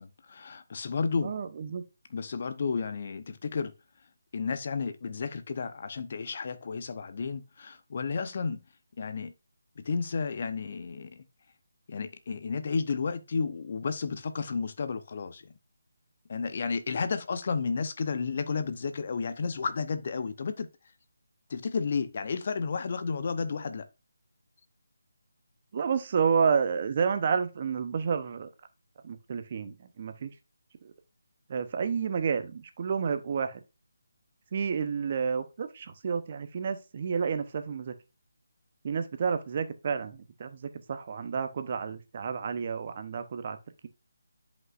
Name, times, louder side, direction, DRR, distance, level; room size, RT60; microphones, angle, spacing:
voice 1, 0.0-1.3 2.1-3.7 4.3-8.6 9.0-9.3 9.8-11.2 11.9-15.5 16.3-20.7 21.5-23.9, left 5 dB, 45° left, 0.8 m, -32 dB
voice 2, 1.2-1.8 25.7-28.5 29.0-30.3 30.8-30.9 31.5-33.6 34.5-37.9 38.8-43.6, right 6 dB, 40° right, 0.8 m, -30 dB
11.0 x 5.3 x 2.5 m
figure-of-eight pair, 155°, 0 cm